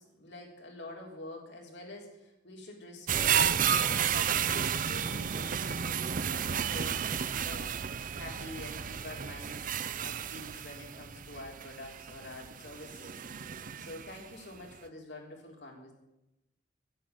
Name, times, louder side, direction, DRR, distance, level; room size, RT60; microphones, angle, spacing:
voice 1, 0.0-3.4 3.9-13.2 13.8-15.9, left 1 dB, 85° left, 0 dB, 3.8 m, -47 dB
sound 1, 3.1-14.3 14.7-14.8, right 8 dB, 50° right, 0.5 m, -32 dB
10.0 x 9.1 x 10.0 m, 0.92 s
head